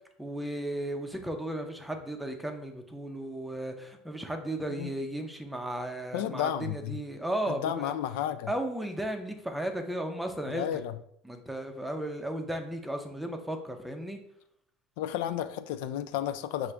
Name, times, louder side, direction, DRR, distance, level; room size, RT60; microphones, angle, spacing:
voice 1, 0.2-7.9 8.5-10.8 11.2-14.2, right 1 dB, 5° right, 5 dB, 0.5 m, -35 dB
voice 2, 6.1-7.0 7.5-8.5 10.5-11.0 15.0-16.7, left 11 dB, 85° left, 11 dB, 0.3 m, -32 dB
6.1 x 2.5 x 3.3 m, 0.70 s
cardioid pair, 145°, 0 cm